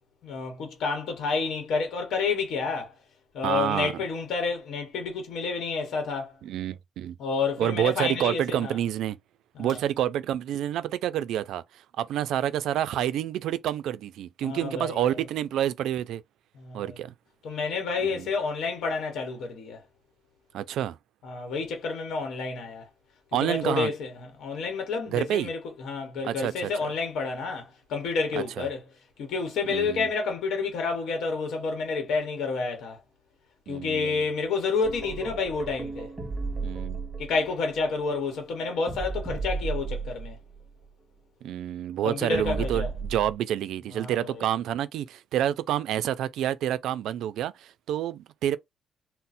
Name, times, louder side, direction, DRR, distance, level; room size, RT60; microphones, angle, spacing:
voice 1, 0.2-2.9 3.3-6.3 7.2-8.8 9.6-9.8 14.4-15.1 16.6-17.0 17.4-19.8 21.2-22.9 23.4-28.8 29.2-33.0 33.7-36.1 37.2-40.4 42.0-42.9 43.9-44.4, left 4 dB, 70° left, 0.9 m, -29 dB
voice 2, 3.4-3.9 6.4-7.1 7.6-9.2 9.6-11.6 12.0-16.2 16.7-17.1 18.0-18.3 20.5-21.0 23.3-23.9 25.1-25.5 26.2-26.9 28.4-28.7 29.7-30.1 33.7-34.2 36.6-37.0 41.4-48.6, right 11 dB, 85° right, 0.3 m, -28 dB
sound 1, 34.8-40.7 42.3-43.3, right 4 dB, 15° right, 0.7 m, -34 dB
4.0 x 2.0 x 2.5 m
cardioid pair, 180°, 0 cm